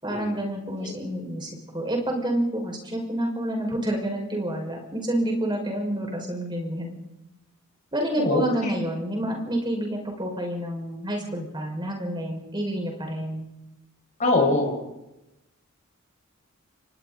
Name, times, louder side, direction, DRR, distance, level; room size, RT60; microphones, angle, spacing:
voice 1, 0.0-6.9 7.9-13.5, right 1 dB, 20° right, 1 dB, 5.7 m, -28 dB
voice 2, 8.2-8.7 14.2-14.8, left 2 dB, 35° left, 0 dB, 5.5 m, -23 dB
29.5 x 25.0 x 4.1 m, 0.93 s
head